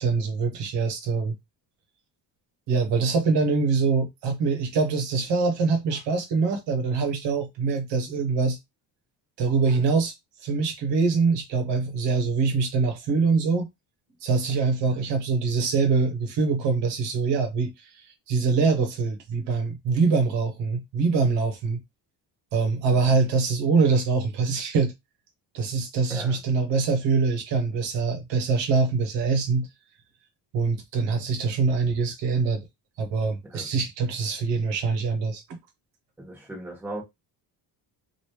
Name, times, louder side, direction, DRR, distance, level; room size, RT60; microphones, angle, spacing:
voice 1, 0.0-1.4 2.7-8.6 9.4-10.1 10.4-13.7 14.2-21.8 22.5-24.9 25.5-29.7 30.5-32.6 33.0-35.4, right 4 dB, 75° right, 1.0 m, -24 dB
voice 2, 36.2-37.0, right 1 dB, 5° right, 1.3 m, -38 dB
3.0 x 2.6 x 3.1 m
cardioid pair, 180°, 43 cm